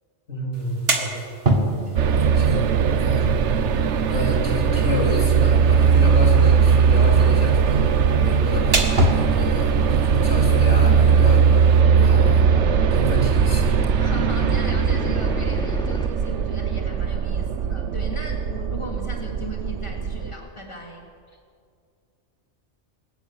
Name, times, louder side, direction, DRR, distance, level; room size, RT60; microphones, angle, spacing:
voice 1, 0.3-1.3 2.2-3.3 4.1-8.0 8.2-11.6 11.9-12.5 12.9-13.8, equal, 75° left, -1 dB, 4.1 m, -29 dB
sound 1, 0.5-11.8, right 1 dB, 55° right, 2.1 m, -29 dB
voice 2, 1.8-2.3 3.1-3.2 14.0-21.0, equal, 25° left, 0 dB, 3.3 m, -36 dB
sound 2, 2.0-20.3, right 6 dB, 75° right, 1.1 m, -19 dB
sound 3, 3.1-16.1, equal, 10° left, 0.3 m, -33 dB
23.0 x 13.0 x 9.5 m, 2.2 s
omnidirectional pair, 1.2 m